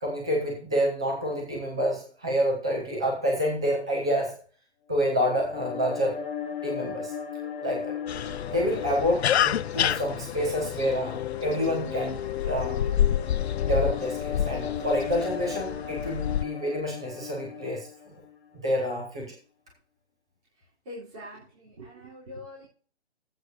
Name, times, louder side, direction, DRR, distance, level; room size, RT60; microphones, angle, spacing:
voice 1, 0.0-4.4 4.9-6.2 6.6-7.1 7.6-7.9 8.5-12.9 13.6-17.9 18.6-19.3, equal, 5° right, -1 dB, 0.4 m, -28 dB
sound 1, 5.0-18.3, left 8 dB, 15° left, 1.4 m, -36 dB
sound 2, 8.1-16.5, left 10 dB, 70° left, 0.5 m, -29 dB
voice 2, 20.9-22.7, left 1 dB, 30° right, -8 dB, 3.7 m, -43 dB
16.5 x 7.8 x 2.7 m, 0.42 s
hypercardioid pair, 160°, 33 cm